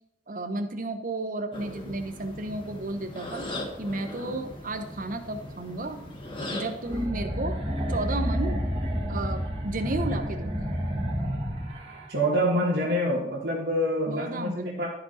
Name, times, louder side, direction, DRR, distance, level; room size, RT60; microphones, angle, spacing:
voice 1, 0.3-3.5 3.8-6.0 6.5-7.6 7.9-8.6 9.1-10.6 14.1-14.8, right 2 dB, 50° right, 7 dB, 0.9 m, -33 dB
sound 1, 1.5-7.1, left 1 dB, 30° left, 1.7 m, -39 dB
sound 2, 6.8-12.1, equal, 35° right, 2.0 m, -30 dB
voice 2, 12.1-14.9, equal, 70° right, -6 dB, 2.3 m, -26 dB
13.0 x 4.9 x 4.2 m, 0.82 s
head